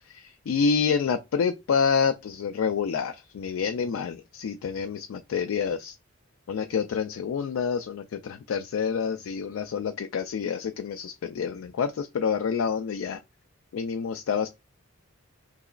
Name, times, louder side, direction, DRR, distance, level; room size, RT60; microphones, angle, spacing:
voice 1, 0.0-6.0 6.5-13.2 13.7-14.5, left 6 dB, 80° left, 0.3 m, -28 dB
4.7 x 2.9 x 2.4 m
head